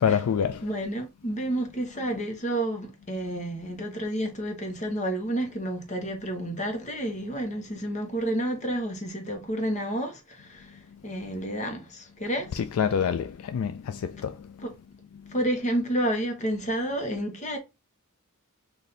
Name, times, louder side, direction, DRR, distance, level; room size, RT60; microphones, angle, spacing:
voice 1, 0.0-0.7 12.5-14.7 15.2-15.3, left 7 dB, 70° left, 0.3 m, -27 dB
voice 2, 0.6-12.6 14.6-14.7 15.3-17.6, right 1 dB, 35° left, 1.1 m, -30 dB
4.1 x 2.7 x 3.3 m
head